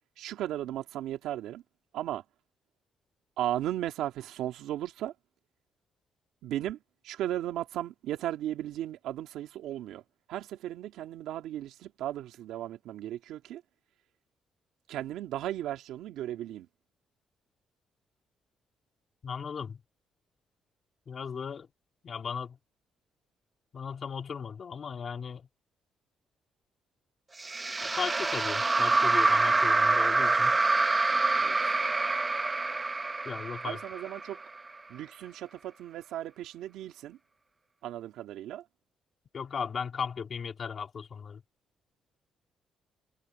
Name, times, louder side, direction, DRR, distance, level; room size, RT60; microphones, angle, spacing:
voice 1, 0.2-1.6 1.9-2.2 3.4-5.1 6.4-6.8 7.0-10.0 10.3-13.6 14.9-16.7 31.4-31.6 33.6-34.4 34.9-37.2 37.8-38.6, right 12 dB, 85° right, 2.1 m, -36 dB
voice 2, 19.2-19.8 21.1-21.7 22.0-22.6 23.7-25.5 27.8-30.6 33.2-33.8 39.3-41.4, left 6 dB, 50° left, 2.9 m, -37 dB
sound 1, 27.4-34.7, right 3 dB, 25° right, 0.9 m, -26 dB
cardioid pair, 90°, 0 cm